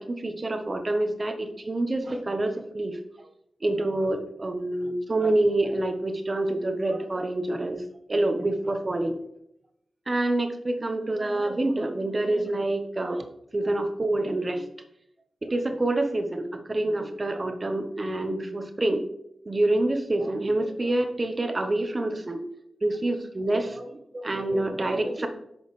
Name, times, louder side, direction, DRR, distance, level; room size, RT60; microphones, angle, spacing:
voice 1, 0.0-3.0 3.6-7.8 8.1-9.2 10.1-13.2 13.5-14.7 15.4-19.0 19.5-22.4 22.8-25.3, right 2 dB, 25° right, 7 dB, 0.9 m, -27 dB
9.6 x 6.2 x 3.2 m, 0.76 s
wide cardioid pair, 145°, 0 cm